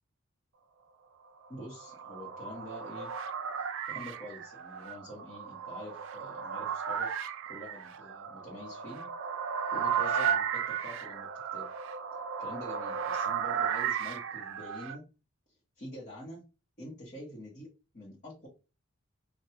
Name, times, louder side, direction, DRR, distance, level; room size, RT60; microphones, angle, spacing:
voice 1, 1.5-3.1 3.5-7.1 7.4-9.1 9.7-11.6 12.4-15.0 15.8-16.4 16.8-17.7 17.9-18.5, left 1 dB, 35° left, -6 dB, 1.1 m, -46 dB
sound 1, 1.5-15.0, right 7 dB, 60° right, 0.4 m, -35 dB
3.4 x 2.3 x 2.9 m, 0.30 s
head